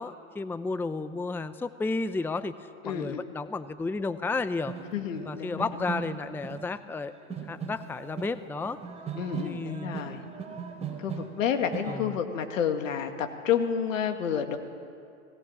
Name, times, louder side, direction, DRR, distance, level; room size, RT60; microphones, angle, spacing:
voice 1, 0.0-2.5 2.8-4.7 5.2-7.1 7.4-8.8 9.4-10.0 11.9-12.2, left 3 dB, 5° left, 13 dB, 0.6 m, -32 dB
voice 2, 2.8-3.2 4.9-5.9 9.2-10.2 11.0-14.6, left 8 dB, 80° left, 6 dB, 2.2 m, -30 dB
sound 1, 4.3-4.4 4.7-6.7 6.9-11.9, right 6 dB, 15° right, 4.2 m, -39 dB
19.5 x 17.5 x 8.8 m, 2.4 s
hypercardioid pair, 105°, 39 cm